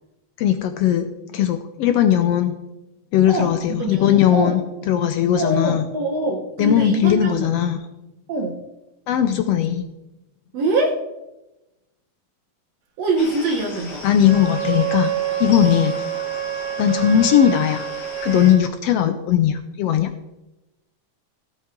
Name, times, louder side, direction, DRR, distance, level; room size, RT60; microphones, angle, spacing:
voice 1, 0.4-2.5 3.1-4.6 4.9-5.8 6.6-7.8 9.1-9.9 14.0-15.1 15.4-15.9 16.8-17.9 18.2-20.1, left 10 dB, 80° left, 9 dB, 1.4 m, -18 dB
voice 2, 3.3-4.6 5.4-7.5 8.3-8.6 10.5-11.0 13.0-14.0, right 2 dB, 65° right, 0 dB, 2.1 m, -24 dB
sound 1, 13.2-18.6, left 3 dB, 45° left, 1.7 m, -38 dB
Wind instrument woodwind instrument, 14.2-18.7, right 11 dB, 90° right, 2.7 m, -27 dB
16.5 x 7.4 x 3.7 m, 0.98 s
omnidirectional pair, 3.4 m